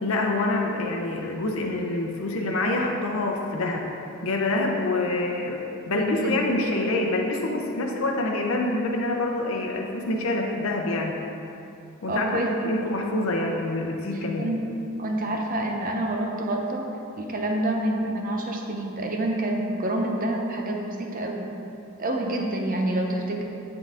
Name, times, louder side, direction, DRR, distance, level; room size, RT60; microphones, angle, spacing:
voice 1, 0.0-3.9 4.2-11.2 12.0-14.5, left 2 dB, 65° left, 1 dB, 0.7 m, -26 dB
voice 2, 5.9-6.4 12.1-12.9 14.4-14.7 15.0-16.9 17.2-21.5 22.0-23.4, right 1 dB, 40° right, 1 dB, 0.7 m, -27 dB
9.6 x 3.9 x 3.6 m, 2.7 s
head